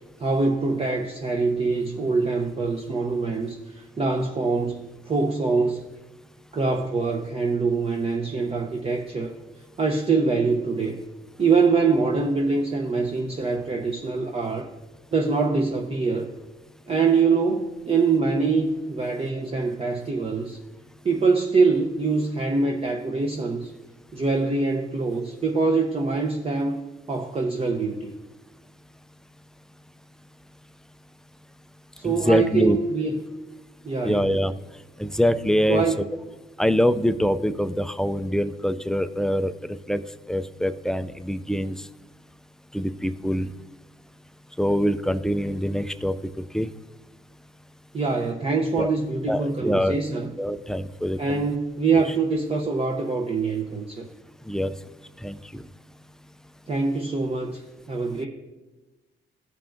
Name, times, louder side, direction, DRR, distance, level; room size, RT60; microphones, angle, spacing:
voice 1, 0.2-5.8 6.5-9.3 9.8-11.0 11.4-14.7 15.1-16.3 16.9-20.6 21.0-23.7 24.1-26.8 27.1-28.1 32.0-33.1 33.8-34.3 35.7-36.0 47.9-50.3 51.2-54.1 56.7-58.3, right 4 dB, 30° right, 2 dB, 0.7 m, -24 dB
voice 2, 32.0-32.8 34.0-34.5 35.0-35.8 36.6-39.5 39.9-40.0 40.3-41.8 42.7-43.5 44.6-46.1 46.5-46.7 48.8-48.9 49.3-50.0 50.4-51.5 54.5-54.7 55.2-55.6, equal, 5° left, 12 dB, 0.3 m, -24 dB
15.0 x 5.5 x 2.6 m, 1.1 s
cardioid pair, 90°, 20 cm